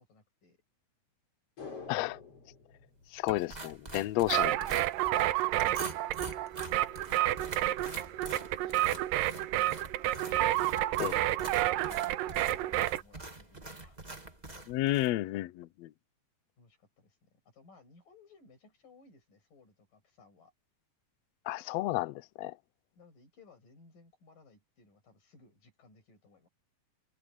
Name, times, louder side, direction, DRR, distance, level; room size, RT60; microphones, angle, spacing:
voice 1, 0.1-0.6 5.1-6.2 6.7-10.1 11.1-14.0 16.6-20.5 23.0-26.5, left 3 dB, 70° left, 7.9 m, -60 dB
sound 1, 1.6-4.0 4.3-4.4, left 4 dB, 40° left, 6.3 m, -48 dB
voice 2, 3.1-4.6 11.0-11.2 14.7-15.9 21.5-22.5, left 17 dB, 90° left, 1.4 m, -31 dB
sound 2, 3.3-15.1, right 2 dB, 15° right, 1.7 m, -45 dB
sound 3, 4.3-13.0, right 14 dB, 85° right, 2.5 m, -30 dB
omnidirectional pair, 4.0 m